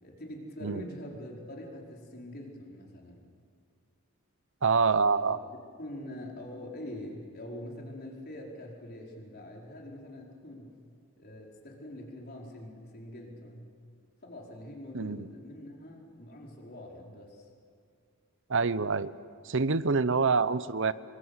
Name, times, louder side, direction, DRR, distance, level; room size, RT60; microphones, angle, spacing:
voice 1, 0.0-3.2 5.1-5.4 5.8-10.8 11.2-13.8 14.2-17.5, left 1 dB, 45° left, -1 dB, 4.9 m, -44 dB
voice 2, 4.6-5.4 14.9-15.3 18.5-19.1 19.4-20.9, right 4 dB, 60° right, 15 dB, 0.8 m, -26 dB
26.5 x 24.0 x 8.2 m, 2.2 s
head